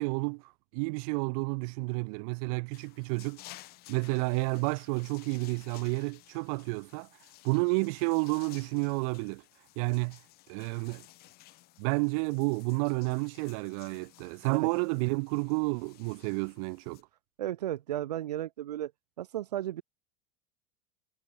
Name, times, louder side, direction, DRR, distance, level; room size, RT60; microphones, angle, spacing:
voice 1, 0.0-3.4 3.9-7.1 7.4-9.4 9.8-10.2 10.5-11.0 11.8-17.0, right 33 dB, 60° right, 0.7 m, -30 dB
sound 1, 2.7-17.0, left 18 dB, 50° left, 5.2 m, -55 dB
voice 2, 17.4-18.9 19.2-19.8, right 12 dB, 80° right, 1.0 m, -34 dB
hypercardioid pair, 95°, 20 cm